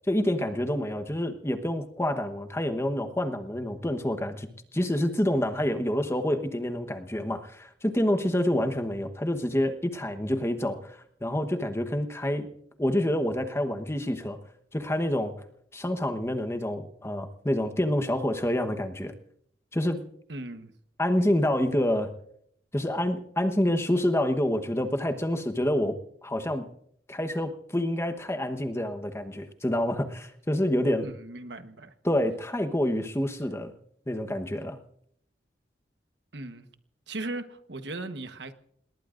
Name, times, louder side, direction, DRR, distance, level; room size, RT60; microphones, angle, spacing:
voice 1, 0.1-12.5 12.8-14.4 14.7-15.3 15.7-19.1 19.7-20.0 21.0-22.1 22.7-26.0 26.2-26.7 27.1-31.1 32.0-33.7 34.1-34.8, left 1 dB, 15° left, 1.1 m, -27 dB
voice 2, 20.3-20.7 31.0-31.9 36.3-36.7 37.1-38.5, right 2 dB, 75° right, 1.2 m, -37 dB
27.5 x 20.0 x 2.6 m
head